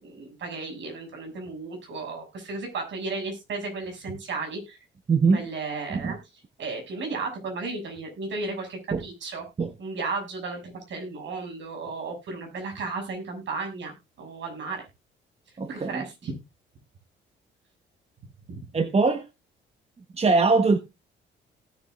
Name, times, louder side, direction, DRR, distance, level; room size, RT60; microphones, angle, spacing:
voice 1, 0.0-4.8 5.3-6.2 6.6-9.4 9.8-14.8 15.7-16.3 18.5-18.6, right 3 dB, 65° right, 6.1 m, -34 dB
voice 2, 5.1-5.4 5.9-6.2 8.9-9.0 9.6-9.7 15.6-16.0 18.7-19.2 20.2-20.8, right 4 dB, 30° right, 1.1 m, -22 dB
18.0 x 7.3 x 2.4 m
cardioid pair, 90°, 20 cm